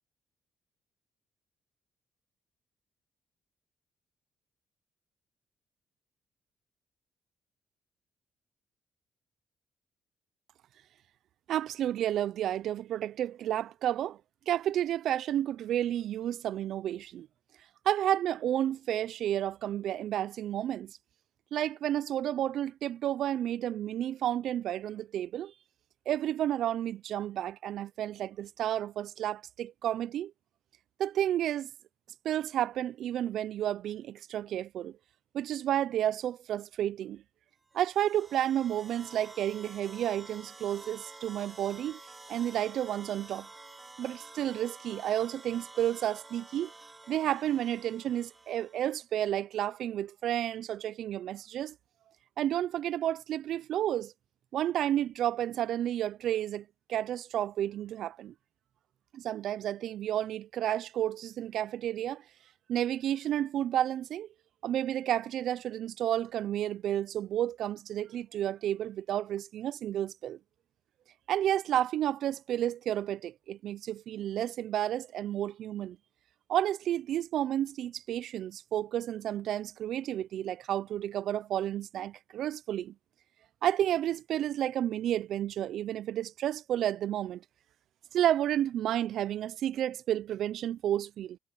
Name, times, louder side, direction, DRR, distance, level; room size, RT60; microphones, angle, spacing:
voice 1, 11.5-14.2 14.5-17.3 17.9-21.0 21.5-25.5 26.1-30.3 31.0-31.7 32.2-35.0 35.3-37.2 37.7-42.0 42.3-43.5 44.0-46.7 47.1-51.8 52.4-54.1 54.5-58.3 59.1-62.2 62.7-64.3 64.6-70.4 71.3-76.0 76.5-82.9 83.6-87.4 88.1-91.4, right 11 dB, 75° right, 0.4 m, -31 dB
sound 1, 37.7-49.0, right 3 dB, 25° right, 3.8 m, -50 dB
cardioid pair, 90°, 0 cm